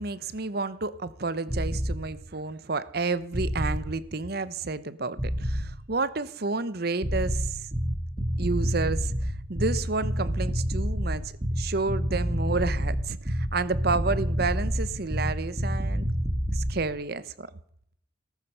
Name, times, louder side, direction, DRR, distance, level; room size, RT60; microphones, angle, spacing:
voice 1, 0.0-7.6 8.4-16.1 16.5-17.5, right 3 dB, 50° right, 0.9 m, -30 dB
sound 1, 1.5-2.0 3.3-3.9 5.2-5.7 7.0-16.8, equal, 25° right, 2.7 m, -28 dB
18.5 x 13.5 x 5.5 m
head